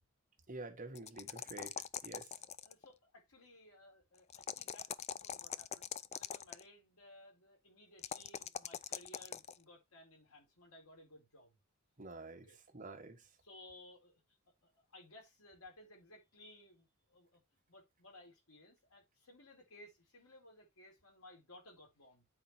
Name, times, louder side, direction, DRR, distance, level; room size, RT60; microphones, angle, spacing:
voice 1, 0.5-1.7 2.0-2.3 12.0-12.5 12.7-13.2, right 2 dB, 40° right, 1.6 m, -48 dB
sound 1, 1.0-2.9 4.3-6.6 8.0-9.6, left 8 dB, 30° left, 0.3 m, -43 dB
voice 2, 2.3-11.6 12.4-12.6 13.4-14.2 14.6-17.4 17.7-22.3, left 1 dB, 80° left, 4.3 m, -59 dB
8.7 x 4.8 x 4.4 m
head